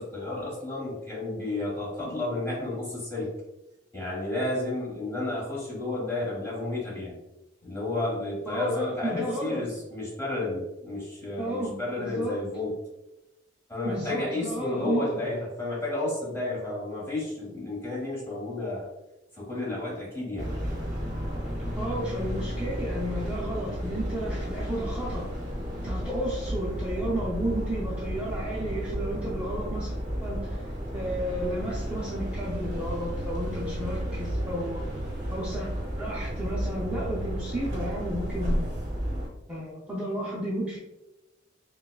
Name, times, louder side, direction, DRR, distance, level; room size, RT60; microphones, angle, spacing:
voice 1, 0.0-3.3 3.9-7.2 7.6-12.7 13.7-18.9 19.3-20.5, left 2 dB, 15° left, -6 dB, 1.5 m, -32 dB
voice 2, 8.5-9.6 11.4-12.4 13.8-15.1 21.7-25.3 25.8-34.9 35.3-35.7 36.0-38.8 39.5-40.8, equal, 5° right, -8 dB, 0.6 m, -32 dB
sound 1, 20.4-39.3, equal, 40° right, 0.9 m, -32 dB
5.3 x 2.3 x 2.3 m, 0.98 s
head